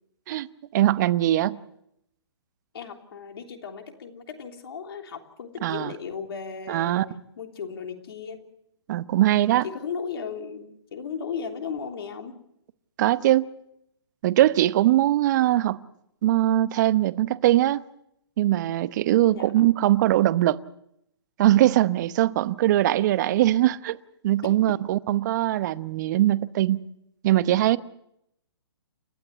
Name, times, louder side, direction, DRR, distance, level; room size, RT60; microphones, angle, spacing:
voice 1, 0.7-1.6 5.6-5.9 6.7-7.0 8.9-9.6 13.0-13.5 14.2-15.8 16.2-17.8 18.4-20.6 21.4-24.0 24.2-26.8 27.2-27.8, right 14 dB, 45° right, 0.9 m, -21 dB
voice 2, 2.7-7.0 7.4-8.4 9.6-12.3 19.3-19.7 24.4-24.8, left 6 dB, 60° left, 3.2 m, -36 dB
29.5 x 13.0 x 8.1 m
hypercardioid pair, 135°, 14 cm